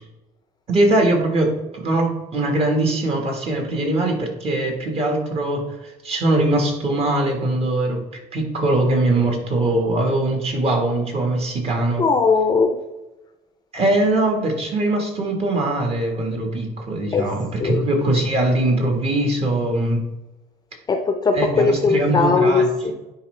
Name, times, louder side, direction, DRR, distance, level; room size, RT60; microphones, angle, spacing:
voice 1, 0.7-12.0 13.7-20.0 21.3-22.9, right 2 dB, 40° right, 2 dB, 1.6 m, -21 dB
voice 2, 12.0-12.7 17.1-17.2 17.6-17.8 20.9-22.9, left 4 dB, 25° left, 5 dB, 0.6 m, -19 dB
10.0 x 4.4 x 3.3 m, 1.0 s
cardioid pair, 145°, 16 cm